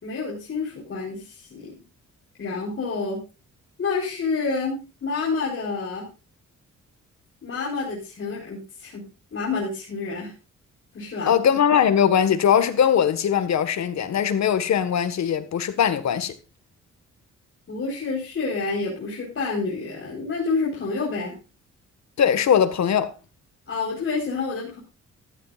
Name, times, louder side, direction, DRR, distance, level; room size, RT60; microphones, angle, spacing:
voice 1, 0.0-1.8 2.4-3.2 3.8-6.1 7.4-9.0 9.3-10.3 10.9-11.3 17.7-21.3 23.7-24.8, left 4 dB, 45° left, 4.5 m, -28 dB
voice 2, 11.2-16.3 22.2-23.1, left 8 dB, 65° left, 1.7 m, -20 dB
14.5 x 13.0 x 2.5 m
cardioid pair, 120°, 29 cm